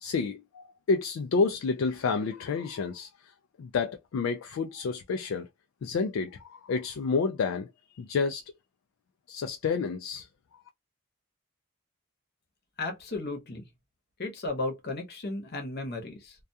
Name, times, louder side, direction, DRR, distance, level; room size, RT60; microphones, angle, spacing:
voice 1, 0.0-3.1 3.6-5.5 5.8-7.7 7.9-8.4 9.3-10.3, left 4 dB, 60° left, 0.3 m, -29 dB
voice 2, 12.8-13.7 14.2-16.4, left 2 dB, 45° left, 0.8 m, -34 dB
2.3 x 2.2 x 2.7 m
head